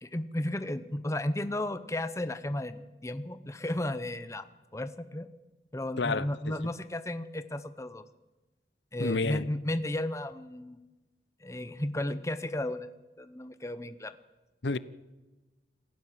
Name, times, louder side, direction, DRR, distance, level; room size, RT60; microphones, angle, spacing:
voice 1, 0.0-4.4 4.7-5.3 5.7-8.0 8.9-10.8 11.4-12.9 13.2-14.1, left 1 dB, 15° left, 0.8 m, -34 dB
voice 2, 6.0-6.7 9.0-9.5 14.6-14.8, left 3 dB, 75° left, 0.8 m, -30 dB
27.5 x 15.5 x 7.6 m
head